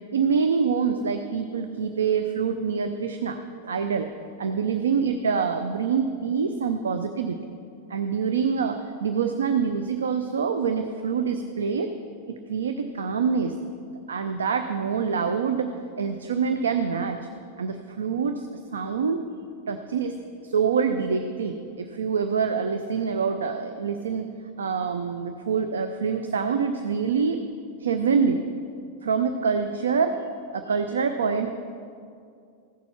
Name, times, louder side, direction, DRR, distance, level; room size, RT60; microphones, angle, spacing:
voice 1, 0.1-3.4 3.6-4.1 4.4-7.4 7.9-11.9 12.3-15.7 16.0-17.2 17.6-18.5 18.7-19.2 19.7-20.2 20.4-24.2 24.6-27.4 27.8-28.4 29.0-30.2 30.5-31.5, right 6 dB, 70° right, 8 dB, 0.5 m, -25 dB
15.0 x 6.8 x 5.9 m, 2.4 s
figure-of-eight pair, 90°, 0 cm